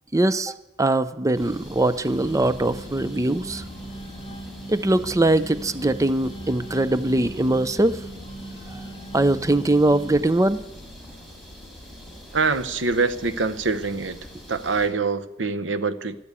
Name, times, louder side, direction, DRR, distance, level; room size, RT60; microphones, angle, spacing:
voice 1, 0.1-3.6 4.7-8.0 8.7-8.8 9.1-10.6, right 2 dB, 15° right, 14 dB, 0.5 m, -21 dB
sound 1, 1.3-14.9, left 1 dB, ahead, 5.7 m, -43 dB
sound 2, 2.1-10.2, right 1 dB, 40° left, 2.9 m, -39 dB
voice 2, 12.3-14.2 14.5-16.2, right 4 dB, 70° right, 10 dB, 1.0 m, -24 dB
13.5 x 12.0 x 8.3 m, 0.96 s
head